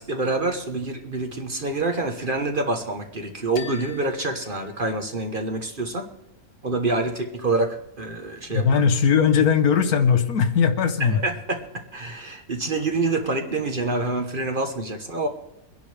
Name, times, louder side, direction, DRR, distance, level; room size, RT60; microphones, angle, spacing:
voice 1, 0.0-6.1 6.6-8.6 11.1-15.3, right 2 dB, 40° right, 5 dB, 1.1 m, -27 dB
sound 1, 3.6-5.5, left 5 dB, 60° left, 1.3 m, -44 dB
voice 2, 8.5-11.2, left 6 dB, 75° left, 8 dB, 1.5 m, -19 dB
23.5 x 10.5 x 3.4 m, 0.87 s
omnidirectional pair, 1.6 m